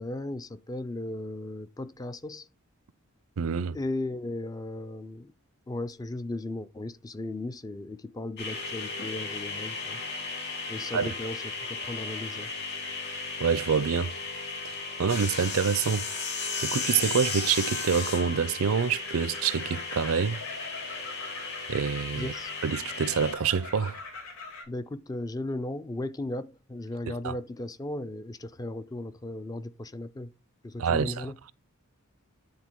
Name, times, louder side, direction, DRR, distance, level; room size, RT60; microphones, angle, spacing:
voice 1, 0.0-2.4 3.7-5.3 5.7-10.0 10.7-12.5 22.2-22.5 24.7-30.3 30.6-31.3, left 2 dB, 15° left, 0.3 m, -36 dB
voice 2, 3.4-3.8 10.9-11.1 13.1-14.2 14.6-16.1 16.6-20.4 20.9-21.0 21.7-22.3 22.6-24.0 27.2-27.4 30.8-31.5, right 6 dB, 70° right, 0.5 m, -27 dB
sound 1, 8.4-23.3, left 4 dB, 50° left, 2.9 m, -35 dB
sound 2, 18.7-24.6, left 3 dB, 70° left, 2.9 m, -42 dB
9.6 x 3.7 x 4.5 m
head